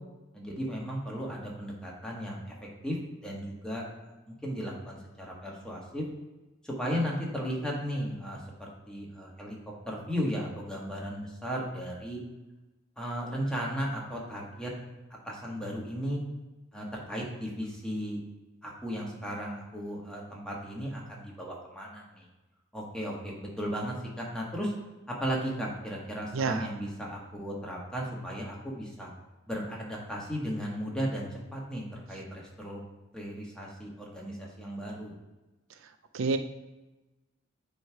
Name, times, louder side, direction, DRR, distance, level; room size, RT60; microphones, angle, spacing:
voice 1, 0.3-2.5 2.8-3.0 3.2-6.0 6.6-9.5 9.9-12.2 13.0-14.7 15.2-16.2 16.7-18.2 18.6-22.2 22.7-24.7 25.1-29.1 29.5-32.8 33.1-35.1, equal, 5° left, -3 dB, 1.4 m, -35 dB
voice 2, 26.3-26.7 36.1-36.4, right 4 dB, 80° right, 9 dB, 0.4 m, -27 dB
9.1 x 3.2 x 4.6 m, 1.1 s
head